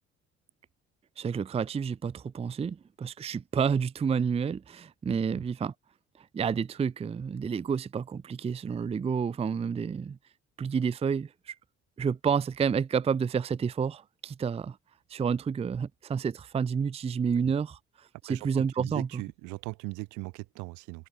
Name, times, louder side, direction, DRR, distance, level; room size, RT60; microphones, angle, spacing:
voice 1, 1.2-5.7 6.2-10.2 10.6-11.6 12.0-14.8 15.1-19.2, right 6 dB, 20° right, 0.4 m, -30 dB
voice 2, 18.2-21.1, right 27 dB, 85° right, 2.1 m, -39 dB
supercardioid pair, 65°, 29 cm